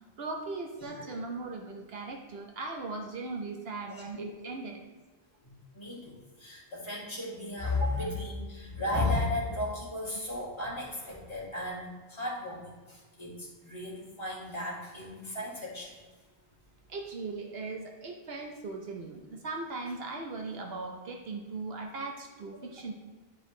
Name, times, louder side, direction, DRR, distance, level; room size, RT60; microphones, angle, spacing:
voice 1, 0.2-4.8 16.9-22.9, right 3 dB, 70° right, 1 dB, 1.0 m, -38 dB
voice 2, 0.8-1.2 3.9-4.3 5.4-15.9, left 2 dB, 25° left, -7 dB, 2.5 m, -35 dB
10.5 x 5.0 x 3.2 m, 1.3 s
omnidirectional pair, 1.1 m